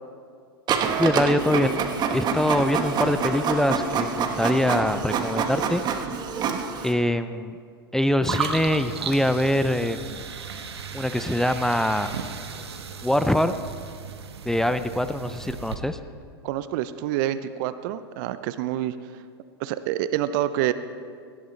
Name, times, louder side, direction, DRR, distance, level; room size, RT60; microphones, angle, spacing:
Printer, 0.7-6.9, right 6 dB, 30° right, 1.2 m, -26 dB
voice 1, 1.0-1.8 2.1-5.8 6.8-7.6 7.9-10.2 10.9-12.1 13.0-13.5 14.5-16.0, left 1 dB, 5° left, 10 dB, 0.4 m, -23 dB
sound 1, 8.2-15.7, right 6 dB, 85° right, 1.2 m, -35 dB
voice 2, 16.4-18.9 19.6-20.7, right 13 dB, 50° right, 13 dB, 0.6 m, -27 dB
18.0 x 12.0 x 3.3 m, 2.2 s
hypercardioid pair, 105°, 13 cm